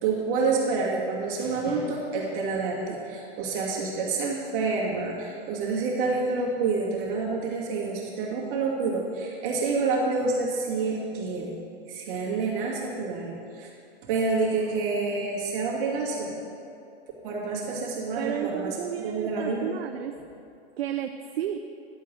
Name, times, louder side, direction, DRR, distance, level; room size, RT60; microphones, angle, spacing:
voice 1, 0.0-11.5 11.9-13.7 14.0-16.3 17.2-19.7, right 4 dB, 55° right, -3 dB, 2.6 m, -28 dB
voice 2, 18.2-20.2 20.8-21.6, right 10 dB, 70° right, 7 dB, 0.6 m, -32 dB
11.0 x 4.7 x 7.6 m, 2.6 s
hypercardioid pair, 130°, 31 cm